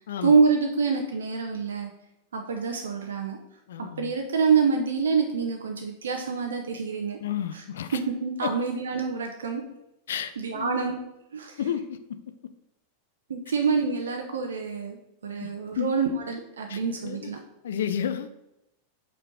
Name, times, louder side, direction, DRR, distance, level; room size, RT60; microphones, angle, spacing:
voice 1, 0.2-1.9 2.3-3.4 3.8-7.2 7.5-7.6 7.9-9.6 10.4-10.9 11.3-11.6 13.3-15.0 15.2-17.4, right 5 dB, 65° right, 3 dB, 0.7 m, -26 dB
voice 2, 3.7-4.1 7.2-8.0 8.4-8.5 10.1-10.8 11.6-12.0 15.4-15.5 15.8-15.9 16.7-17.3 17.6-18.3, left 9 dB, 60° left, 11 dB, 0.5 m, -31 dB
5.2 x 4.5 x 5.3 m, 0.86 s
figure-of-eight pair, 90°, 0 cm